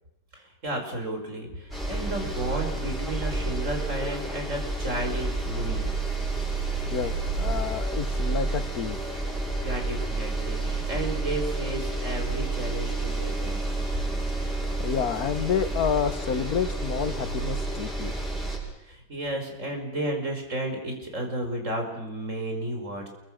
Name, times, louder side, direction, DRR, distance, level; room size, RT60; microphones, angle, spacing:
voice 1, 0.3-5.8 9.4-13.6 18.8-23.1, right 1 dB, 55° right, 3 dB, 5.6 m, -33 dB
sound 1, 1.7-18.6, right 2 dB, ahead, 7.8 m, -30 dB
voice 2, 6.9-9.0 14.8-18.1, left 7 dB, 80° left, 12 dB, 1.8 m, -29 dB
28.0 x 23.5 x 6.5 m, 0.91 s
omnidirectional pair, 1.6 m